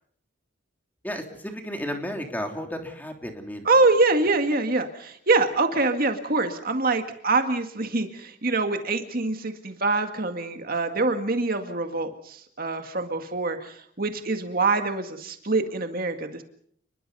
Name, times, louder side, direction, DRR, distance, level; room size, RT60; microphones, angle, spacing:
voice 1, 1.0-3.6, equal, 10° left, 4 dB, 3.3 m, -33 dB
voice 2, 3.7-16.4, right 3 dB, 45° right, 6 dB, 2.0 m, -25 dB
29.5 x 22.0 x 5.5 m, 0.64 s
head